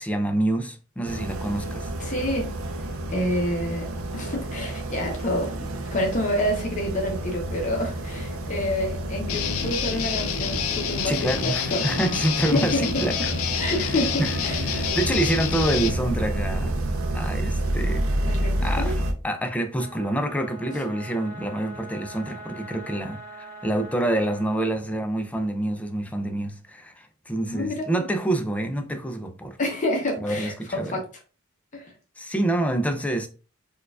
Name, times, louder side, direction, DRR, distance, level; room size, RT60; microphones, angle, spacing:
voice 1, 0.0-1.9 11.0-13.3 13.9-14.3 14.7-16.8 17.1-18.0 18.6-29.6 30.2-31.0 32.2-33.3, right 1 dB, 5° left, 0.4 m, -27 dB
sound 1, 1.0-19.1, right 1 dB, 80° right, 0.5 m, -29 dB
voice 2, 2.0-2.5 3.1-5.5 5.9-11.9 12.5-12.9 13.5-14.6 18.3-18.9 20.7-20.8 27.5-27.8 29.6-31.0 31.7-31.9, left 1 dB, 40° left, 0.8 m, -28 dB
Guitar, 9.3-16.0, left 8 dB, 85° left, 0.4 m, -28 dB
sound 2, 19.7-24.6, right 2 dB, 45° right, 1.0 m, -42 dB
4.4 x 2.3 x 2.2 m
head